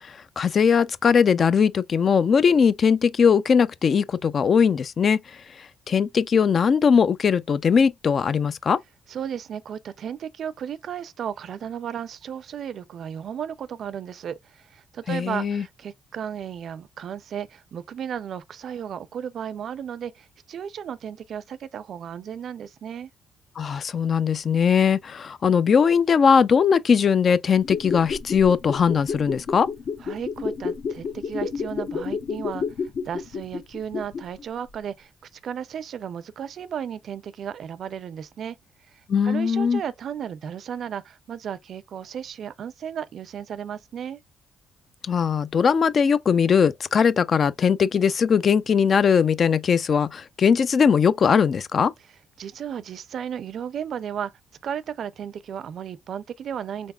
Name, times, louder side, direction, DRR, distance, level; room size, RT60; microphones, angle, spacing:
voice 1, 0.0-8.8 15.1-15.6 23.6-29.7 39.1-39.8 45.0-51.9, left 6 dB, 50° left, 0.4 m, -20 dB
voice 2, 9.1-23.1 30.0-35.1 35.4-38.6 38.9-44.2 52.4-54.3 54.6-56.9, right 8 dB, 60° right, 0.4 m, -34 dB
sound 1, 27.6-34.4 34.7-34.8, left 5 dB, 65° left, 1.0 m, -30 dB
3.8 x 3.5 x 2.3 m
cardioid pair, 90°, 0 cm